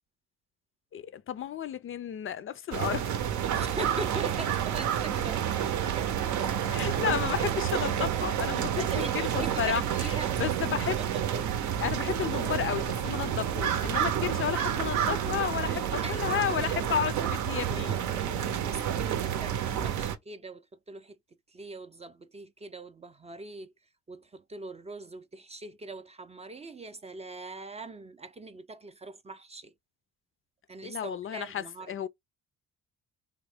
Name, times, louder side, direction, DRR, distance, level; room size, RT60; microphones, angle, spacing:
voice 1, 0.9-3.2 6.6-8.9 9.1-9.8 10.4-11.0 11.8-18.0 30.8-32.1, left 9 dB, 45° left, 0.4 m, -32 dB
sound 1, 2.7-20.2, right 9 dB, 70° right, 0.6 m, -29 dB
voice 2, 3.5-6.6 8.8-11.0 15.6-17.0 17.5-21.2 21.5-23.7 24.1-29.7 30.7-31.9, right 3 dB, 20° right, 0.4 m, -42 dB
3.5 x 2.0 x 3.4 m
cardioid pair, 90°, 30 cm